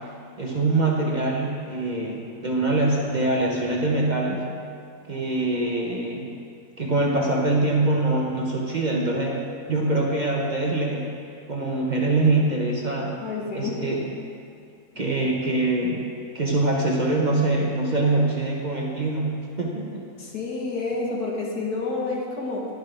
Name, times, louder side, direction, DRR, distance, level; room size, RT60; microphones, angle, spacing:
voice 1, 0.4-4.4 5.1-6.4 6.8-9.4 9.7-11.1 11.5-13.2 13.5-14.0 15.0-16.1 16.3-20.1, right 2 dB, 35° right, -2 dB, 0.8 m, -24 dB
voice 2, 13.2-13.8 20.2-22.7, left 3 dB, 90° left, -2 dB, 2.0 m, -29 dB
11.5 x 10.0 x 3.3 m, 2.4 s
omnidirectional pair, 1.6 m